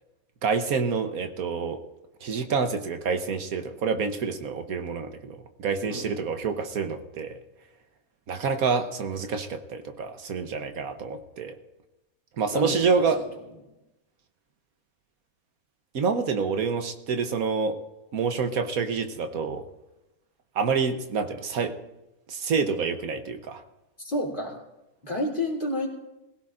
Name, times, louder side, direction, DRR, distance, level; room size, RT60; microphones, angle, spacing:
voice 1, 0.4-1.8 2.2-7.4 8.3-11.6 12.4-13.2 15.9-17.8 18.1-19.7 20.5-21.8 22.3-23.6, right 5 dB, 75° right, 7 dB, 1.4 m, -27 dB
voice 2, 5.8-6.1 12.5-13.2 24.0-24.6 25.0-25.9, left 1 dB, 35° left, -3 dB, 3.5 m, -30 dB
22.0 x 16.0 x 2.6 m, 0.96 s
omnidirectional pair, 1.5 m